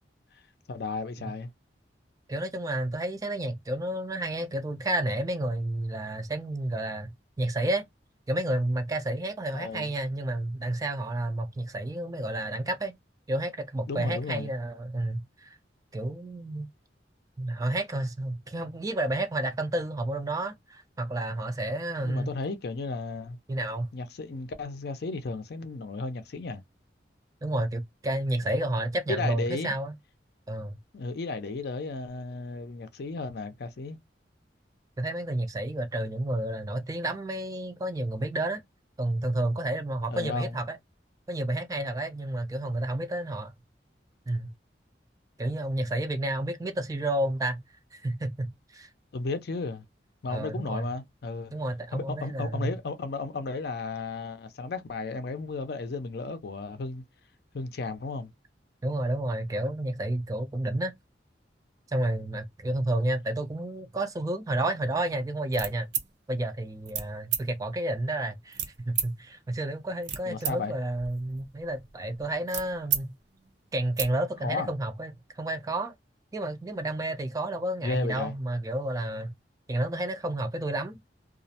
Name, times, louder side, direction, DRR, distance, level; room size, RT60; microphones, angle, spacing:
voice 1, 0.7-1.5 9.5-9.9 13.9-14.5 22.0-23.4 23.9-26.6 29.1-29.7 30.9-34.0 40.1-40.6 49.1-49.8 50.2-51.5 51.9-57.0 57.5-58.3 70.3-70.7 74.4-74.7 77.8-78.3, left 3 dB, 60° left, 0.5 m, -34 dB
voice 2, 2.3-7.1 7.4-7.8 8.3-12.9 13.3-15.5 15.9-16.7 17.4-22.3 23.5-23.9 27.4-29.9 30.5-30.8 35.0-38.6 39.0-40.8 41.3-43.5 44.3-44.5 45.4-47.6 47.9-48.9 50.3-50.9 51.5-52.7 58.8-60.9 61.9-65.9 66.3-68.6 68.9-73.1 73.7-75.9 76.3-79.3 79.7-81.0, right 1 dB, 20° right, 0.3 m, -30 dB
sound 1, 65.5-66.1 66.9-67.1 67.3-67.4 68.5-69.1 69.8-70.5 70.9-73.0 73.4-73.5 73.8-74.1, right 9 dB, 75° right, 0.5 m, -32 dB
2.4 x 2.0 x 2.7 m
head